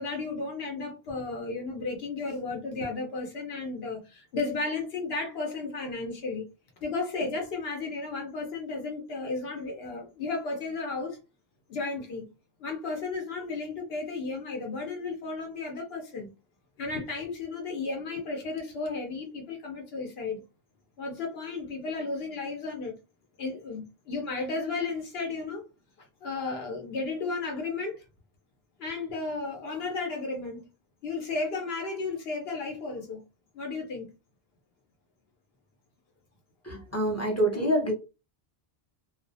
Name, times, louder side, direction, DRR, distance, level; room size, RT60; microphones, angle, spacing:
voice 1, 0.0-6.4 6.8-11.2 11.7-12.3 12.6-16.3 16.8-20.4 21.0-23.0 23.4-25.6 26.2-28.0 28.8-30.6 31.0-33.2 33.5-34.1, left 3 dB, 70° left, 0.9 m, -34 dB
voice 2, 36.6-37.9, right 1 dB, 20° left, 0.5 m, -26 dB
2.4 x 2.0 x 2.6 m
omnidirectional pair, 1.1 m